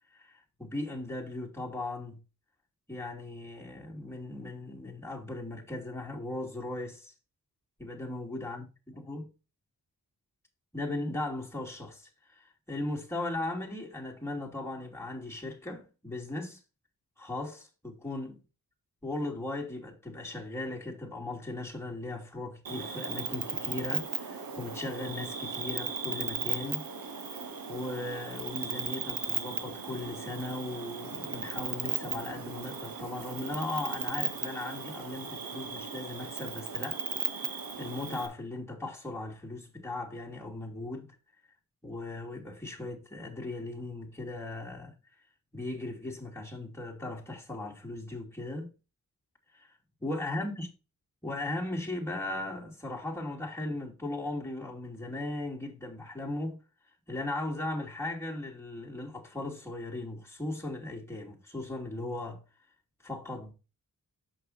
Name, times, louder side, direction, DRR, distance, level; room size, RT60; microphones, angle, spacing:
voice 1, 0.1-2.2 2.9-7.1 7.8-9.3 10.7-16.6 17.2-18.4 19.0-26.8 27.7-41.2 41.8-44.9 45.5-48.7 49.5-49.7 50.0-50.7 51.2-56.6 57.1-62.4 63.0-63.5, left 2 dB, 5° left, 2.6 m, -38 dB
Cricket, 22.7-38.3, right 6 dB, 75° right, 1.2 m, -36 dB
6.4 x 5.9 x 4.1 m
cardioid pair, 70°, 36 cm